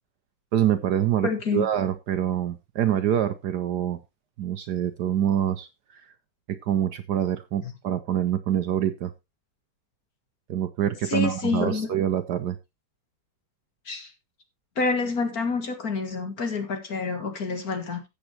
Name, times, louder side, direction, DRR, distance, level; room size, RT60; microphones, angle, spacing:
voice 1, 0.5-4.0 4.4-6.0 6.5-9.1 10.5-12.6, right 10 dB, 65° right, 1.1 m, -25 dB
voice 2, 1.2-1.7 7.6-7.7 11.1-11.9 13.9-14.1 14.8-18.0, left 4 dB, 50° left, 2.0 m, -28 dB
14.0 x 8.2 x 2.9 m
omnidirectional pair, 2.2 m